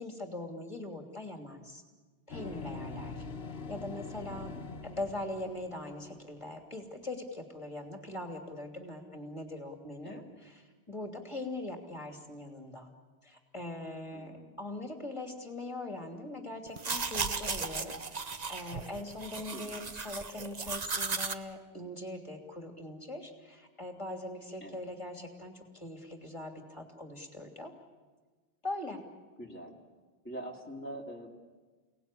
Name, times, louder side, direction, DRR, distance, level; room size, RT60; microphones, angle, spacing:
voice 1, 0.0-1.8 2.3-3.2 3.7-4.6 4.8-10.2 10.9-12.9 13.2-14.3 14.6-17.9 18.5-27.7 28.6-29.0, left 2 dB, 30° left, 3 dB, 3.0 m, -41 dB
sound 1, 2.3-6.3, left 3 dB, 70° left, 1.4 m, -43 dB
voice 2, 14.1-14.6 19.5-19.9 24.6-24.8 29.4-29.8 30.2-31.4, right 1 dB, 10° left, -3 dB, 2.5 m, -44 dB
sound 2, 16.7-21.3, right 4 dB, 45° right, 1.1 m, -36 dB
29.5 x 18.5 x 9.9 m, 1.4 s
omnidirectional pair, 1.0 m